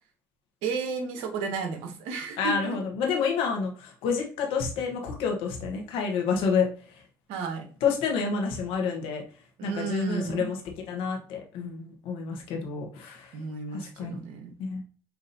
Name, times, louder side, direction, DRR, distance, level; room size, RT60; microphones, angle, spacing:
voice 1, 0.6-2.5 7.3-7.7 9.6-10.5 13.3-14.5, right 5 dB, 80° right, 5 dB, 0.8 m, -33 dB
voice 2, 2.4-7.0 7.8-9.2 9.6-13.4 13.7-14.2 14.6-14.8, left 5 dB, 75° left, 2 dB, 1.1 m, -29 dB
5.7 x 2.6 x 2.6 m, 0.39 s
hypercardioid pair, 60°, 9 cm